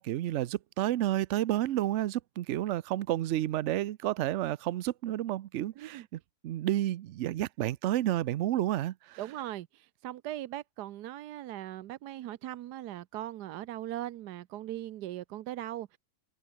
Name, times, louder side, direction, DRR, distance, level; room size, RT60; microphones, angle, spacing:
voice 1, 0.0-9.2, right 13 dB, 65° right, 0.7 m, -31 dB
voice 2, 9.2-16.0, right 14 dB, 85° right, 1.3 m, -39 dB
omnidirectional pair, 1.7 m